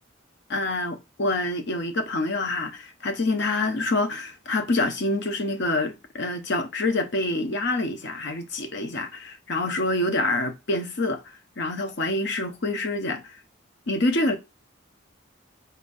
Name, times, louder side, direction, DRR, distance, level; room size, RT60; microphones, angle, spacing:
voice 1, 0.5-11.2 11.6-13.4 13.9-14.4, left 2 dB, 55° left, 0.7 m, -26 dB
4.2 x 3.8 x 2.6 m
head